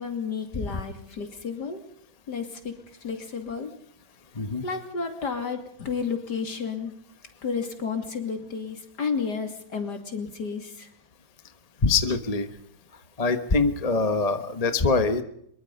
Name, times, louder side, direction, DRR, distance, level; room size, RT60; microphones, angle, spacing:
voice 1, 0.0-1.8 2.3-2.7 3.0-3.7 4.6-6.9 7.4-10.9, left 5 dB, 55° left, 6 dB, 3.2 m, -31 dB
voice 2, 11.8-12.5 13.2-15.2, left 4 dB, 20° left, 9 dB, 1.1 m, -23 dB
24.5 x 22.5 x 5.4 m, 0.69 s
omnidirectional pair, 2.2 m